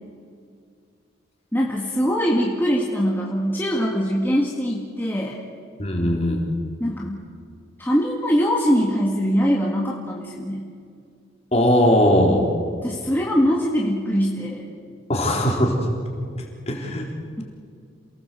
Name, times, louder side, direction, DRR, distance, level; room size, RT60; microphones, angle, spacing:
voice 1, 1.5-5.4 6.8-7.3 7.8-10.7 12.8-14.6, equal, 10° left, -2 dB, 1.9 m, -22 dB
voice 2, 5.8-6.4 11.5-12.4 15.1-15.7 16.7-17.1, equal, 30° left, 0 dB, 4.0 m, -19 dB
28.0 x 18.5 x 7.8 m, 2.3 s
head